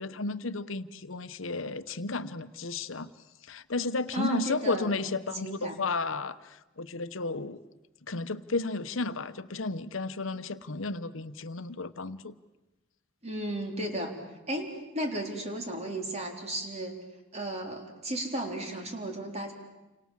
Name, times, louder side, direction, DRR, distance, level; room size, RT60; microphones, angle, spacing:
voice 1, 0.0-3.1 3.4-7.6 8.1-12.3, left 3 dB, 70° left, 12 dB, 1.0 m, -33 dB
voice 2, 4.1-4.9 5.4-5.8 13.2-14.1 14.5-17.0 17.3-19.5, right 1 dB, 35° right, 3 dB, 4.1 m, -34 dB
30.0 x 26.0 x 7.4 m, 1.0 s
head